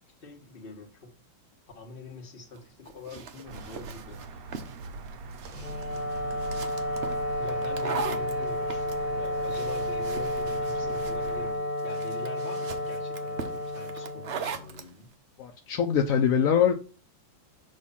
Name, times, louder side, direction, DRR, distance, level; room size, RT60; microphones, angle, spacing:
voice 1, 0.2-1.2 1.7-4.4 5.5-6.1 7.4-15.2, left 4 dB, 35° left, 1.2 m, -44 dB
sound 1, 2.5-14.9, right 6 dB, 85° right, 0.5 m, -40 dB
sound 2, 3.4-11.5, right 4 dB, 70° right, 0.9 m, -42 dB
Wind instrument woodwind instrument, 5.5-14.8, left 1 dB, 55° left, 1.8 m, -31 dB
voice 2, 15.4-16.7, left 8 dB, 75° left, 0.8 m, -23 dB
6.4 x 3.2 x 5.5 m
omnidirectional pair, 2.1 m